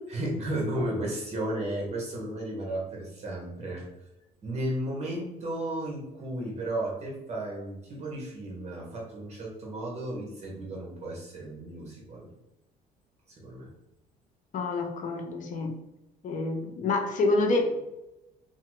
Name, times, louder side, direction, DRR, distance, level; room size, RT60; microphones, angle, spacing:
voice 1, 0.1-3.9 4.4-12.3 13.3-13.7, right 1 dB, 40° right, -2 dB, 1.1 m, -34 dB
voice 2, 14.5-15.7 16.2-17.8, left 2 dB, 50° left, 3 dB, 0.6 m, -27 dB
2.8 x 2.3 x 3.0 m, 0.94 s
cardioid pair, 110°, 17 cm